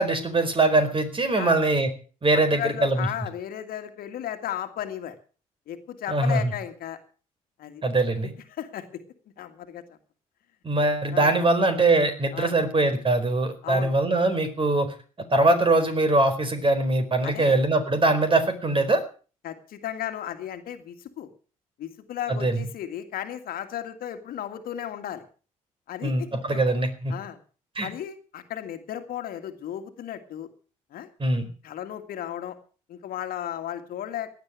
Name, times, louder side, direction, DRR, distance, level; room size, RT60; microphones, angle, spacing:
voice 1, 0.0-1.9 2.2-3.1 6.1-6.4 7.8-8.3 10.6-14.9 15.3-19.0 22.3-22.6 26.0-27.1 27.8-27.9 31.2-31.5, right 2 dB, 30° right, 8 dB, 4.6 m, -22 dB
voice 2, 2.3-5.2 5.7-7.0 7.6-7.8 8.2-9.0 9.4-10.0 11.1-11.3 12.3-12.5 13.6-13.9 17.2-17.6 19.4-21.3 21.8-25.3 25.9-26.6 27.1-27.4 27.8-30.5 30.9-31.1 31.6-32.6 32.9-34.3, left 11 dB, 60° left, 8 dB, 2.1 m, -35 dB
17.0 x 11.0 x 6.2 m, 0.39 s
hypercardioid pair, 50°, 17 cm